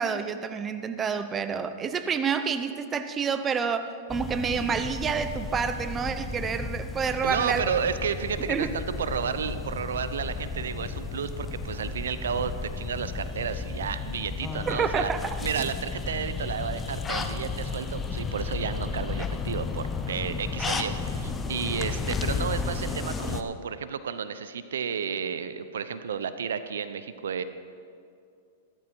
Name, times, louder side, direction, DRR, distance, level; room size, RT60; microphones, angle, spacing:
voice 1, 0.0-7.6 8.5-8.7 14.7-15.4, right 6 dB, 20° right, 10 dB, 0.7 m, -28 dB
sound 1, 4.1-23.4, left 4 dB, 15° left, 0.9 m, -33 dB
voice 2, 7.2-15.1 15.4-27.4, right 7 dB, 80° right, 12 dB, 0.7 m, -32 dB
14.0 x 13.5 x 4.6 m, 2.4 s
hypercardioid pair, 115°, 0 cm